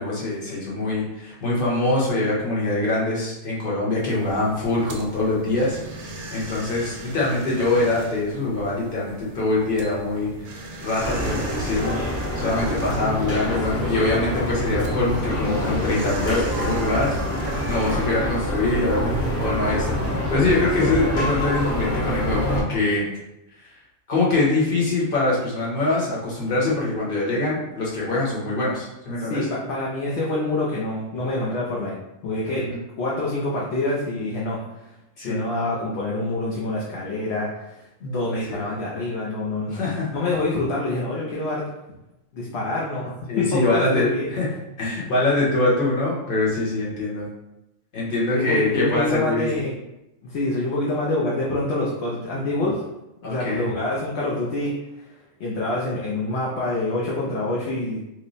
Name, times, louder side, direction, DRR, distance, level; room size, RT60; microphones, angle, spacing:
voice 1, 0.0-10.3 10.8-12.1 12.3-20.0 20.3-23.1 24.1-29.5 32.5-32.6 35.2-35.4 38.0-38.6 39.7-40.1 43.3-44.5 44.8-47.3 47.9-49.5 53.2-53.7, left 2 dB, 45° left, -6 dB, 1.2 m, -24 dB
sound 1, 4.0-19.6, right 2 dB, 65° right, 0.8 m, -38 dB
sound 2, 11.0-22.6, equal, 15° left, 0.8 m, -26 dB
voice 2, 29.3-32.0 32.2-32.7 33.0-34.6 35.2-37.7 38.1-41.7 42.3-44.3 48.3-49.8 50.2-52.8 53.2-55.1 55.4-58.0, left 2 dB, 65° left, -4 dB, 0.8 m, -26 dB
3.0 x 2.1 x 3.9 m, 0.91 s
omnidirectional pair, 1.3 m